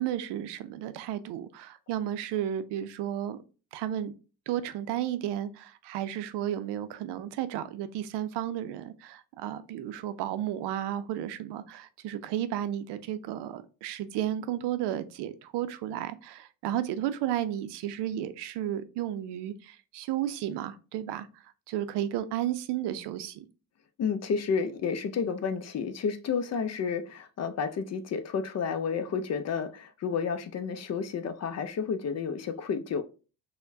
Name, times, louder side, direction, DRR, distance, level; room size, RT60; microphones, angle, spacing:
voice 1, 0.0-3.4 3.7-4.1 4.5-21.3 21.7-23.5, right 11 dB, 70° right, 0.5 m, -33 dB
voice 2, 24.0-33.0, left 6 dB, 40° left, 0.5 m, -31 dB
4.3 x 2.2 x 2.5 m
supercardioid pair, 70°, 42 cm